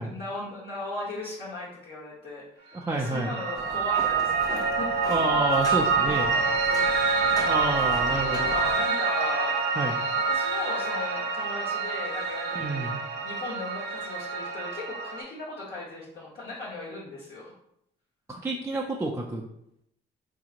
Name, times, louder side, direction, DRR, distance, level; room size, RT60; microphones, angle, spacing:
voice 1, 0.0-4.9 5.9-6.9 8.1-9.6 10.1-12.9 13.2-17.5, left 2 dB, 55° left, -8 dB, 1.0 m, -38 dB
voice 2, 2.7-3.3 5.1-6.3 7.3-8.5 9.8-10.0 12.5-13.0 18.3-19.4, right 2 dB, 15° right, -2 dB, 0.4 m, -29 dB
Piano, 2.8-15.2, right 4 dB, 60° right, 0.6 m, -27 dB
sound 1, 3.6-8.7, left 1 dB, 20° left, 0.7 m, -39 dB
3.8 x 2.9 x 2.5 m, 0.76 s
cardioid pair, 90°, 20 cm